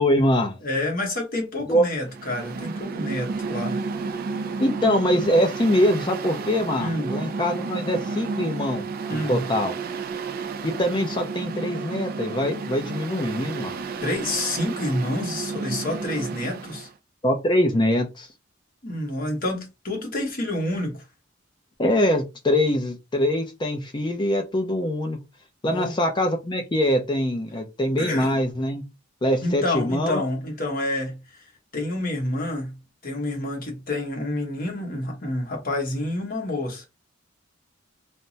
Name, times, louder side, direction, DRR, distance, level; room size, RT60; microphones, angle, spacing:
voice 1, 0.0-0.6 1.7-1.8 4.6-9.7 10.6-13.8 17.2-18.3 21.8-25.2 25.6-28.8 29.2-30.2, left 1 dB, 25° left, 0.4 m, -23 dB
voice 2, 0.6-3.8 6.8-7.2 9.1-9.4 14.0-16.9 18.8-21.0 25.7-26.0 28.0-28.4 29.4-31.2 31.7-32.8 33.0-36.9, left 1 dB, 50° left, 1.0 m, -28 dB
Mechanical fan, 2.1-16.9, right 4 dB, 50° right, 0.3 m, -32 dB
3.3 x 2.0 x 2.7 m
head